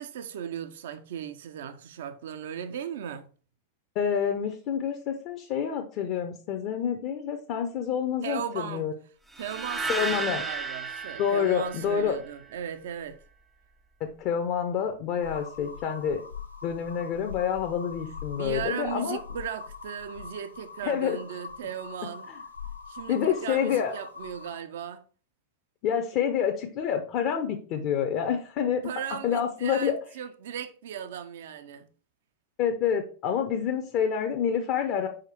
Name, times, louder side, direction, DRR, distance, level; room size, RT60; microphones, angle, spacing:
voice 1, 0.0-3.3 8.2-8.9 9.4-13.2 18.3-22.3 22.9-25.0 28.8-31.9, right 8 dB, 60° right, 0.6 m, -37 dB
voice 2, 3.9-8.9 9.9-10.4 11.2-12.2 14.0-16.2 16.6-19.2 20.8-21.2 22.3-22.4 23.1-23.9 25.8-28.8 29.2-30.0 32.6-35.1, left 8 dB, 40° left, 0.7 m, -28 dB
sound 1, 9.4-12.5, right 4 dB, 10° right, 0.6 m, -34 dB
sound 2, 15.2-24.6, left 6 dB, 85° left, 0.8 m, -43 dB
5.0 x 4.8 x 4.4 m
figure-of-eight pair, 90°, 0 cm